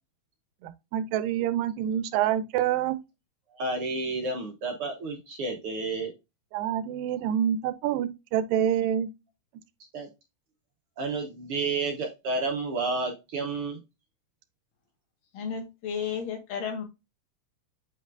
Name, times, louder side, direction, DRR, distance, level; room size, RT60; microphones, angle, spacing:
voice 1, 0.6-3.0 6.5-9.1, right 10 dB, 85° right, 2.3 m, -27 dB
voice 2, 3.5-6.1 9.9-10.1 11.0-13.8, right 3 dB, 60° right, 1.6 m, -31 dB
voice 3, 15.3-16.8, left 7 dB, 85° left, 3.2 m, -33 dB
8.2 x 5.2 x 2.5 m
omnidirectional pair, 3.8 m